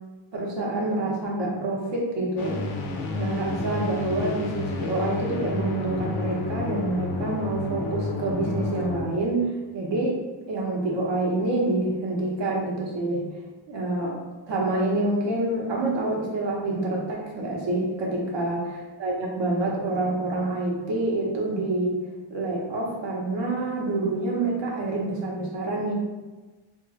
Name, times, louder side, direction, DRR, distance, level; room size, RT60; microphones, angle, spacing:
voice 1, 0.3-2.6 3.1-9.5 9.7-10.2 10.5-13.2 13.7-14.2 14.5-22.0 22.3-25.9, right 2 dB, 60° right, -2 dB, 1.2 m, -27 dB
sound 1, 2.4-9.0, left 3 dB, 80° left, 0.7 m, -31 dB
3.3 x 2.5 x 4.1 m, 1.2 s
cardioid pair, 130°, 49 cm